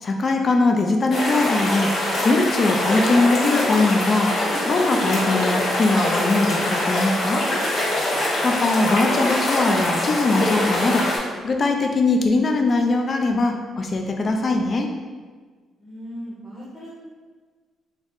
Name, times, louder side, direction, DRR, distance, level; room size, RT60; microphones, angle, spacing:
voice 1, 0.0-1.9 2.2-4.3 4.7-7.5 8.4-11.1 11.4-14.9, left 3 dB, 40° left, 3 dB, 0.4 m, -21 dB
sound 1, 1.1-11.2, left 1 dB, 60° left, 1.5 m, -23 dB
voice 2, 15.8-17.0, equal, 5° left, -10 dB, 0.9 m, -37 dB
3.4 x 2.1 x 3.8 m, 1.5 s
cardioid pair, 90°, 0 cm